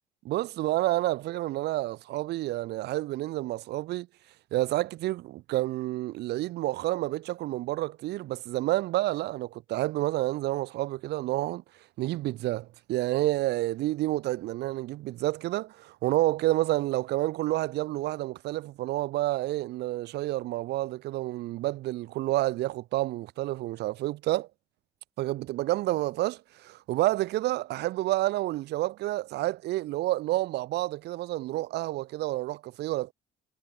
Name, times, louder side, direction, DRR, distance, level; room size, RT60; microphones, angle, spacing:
voice 1, 0.2-4.1 4.5-11.6 12.0-24.5 25.2-33.1, right 16 dB, 80° right, 4.2 m, -29 dB
cardioid pair, 110°, 17 cm